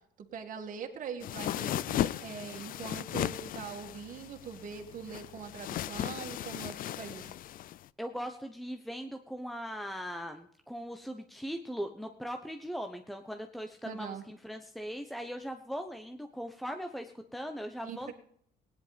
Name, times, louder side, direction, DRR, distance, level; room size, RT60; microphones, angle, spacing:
voice 1, 0.2-7.4 13.8-14.2 17.8-18.1, right 7 dB, 50° right, 3 dB, 2.2 m, -42 dB
sound 1, 1.2-7.8, left 12 dB, 55° left, 0.5 m, -36 dB
voice 2, 8.0-18.1, equal, ahead, 6 dB, 1.0 m, -39 dB
17.0 x 10.5 x 5.1 m, 0.69 s
cardioid pair, 110°, 17 cm